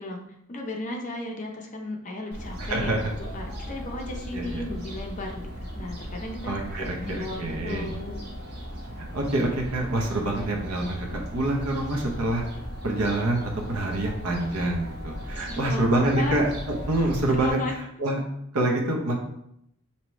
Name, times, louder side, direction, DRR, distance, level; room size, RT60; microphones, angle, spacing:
voice 1, 0.0-2.9 3.2-6.6 7.0-8.3 15.4-15.9 16.1-16.4 17.0-17.7, left 2 dB, 35° left, 1 dB, 0.6 m, -35 dB
Fowl, 2.3-17.5, equal, 45° right, 0.8 m, -37 dB
voice 2, 2.6-3.1 4.3-4.6 6.5-7.9 9.1-12.4 12.8-17.6 18.0-18.2 18.5-19.1, right 1 dB, 80° right, 0 dB, 0.8 m, -26 dB
4.6 x 2.9 x 3.1 m, 0.77 s
head